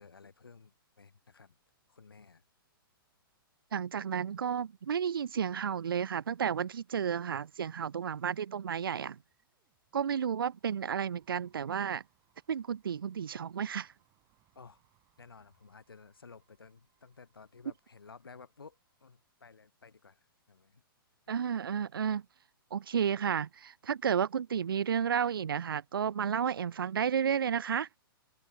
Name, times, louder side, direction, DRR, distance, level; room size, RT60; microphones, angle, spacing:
voice 1, 0.0-1.6 1.9-2.4 14.5-14.8 15.2-20.8 21.3-21.4, left 5 dB, 75° left, 5.5 m, -55 dB
voice 2, 3.7-9.2 9.9-12.0 12.5-13.9 21.3-22.2 22.7-27.9, right 8 dB, 70° right, 0.5 m, -32 dB
sound 1, 9.3-19.9, right 19 dB, 30° right, 7.9 m, -75 dB
open air
figure-of-eight pair, 115°, 12 cm